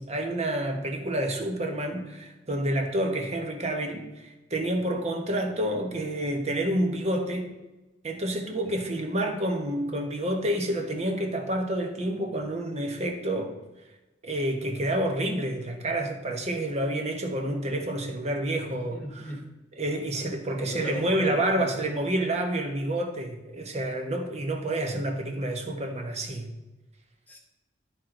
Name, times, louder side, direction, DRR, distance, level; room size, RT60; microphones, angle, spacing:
voice 1, 0.0-7.5 8.0-13.6 14.2-19.0 19.8-26.5, right 1 dB, 35° right, 4 dB, 1.2 m, -29 dB
voice 2, 18.7-19.5 20.5-21.8 27.3-27.4, equal, 10° left, 1 dB, 1.5 m, -38 dB
12.5 x 4.6 x 3.8 m, 1.1 s
head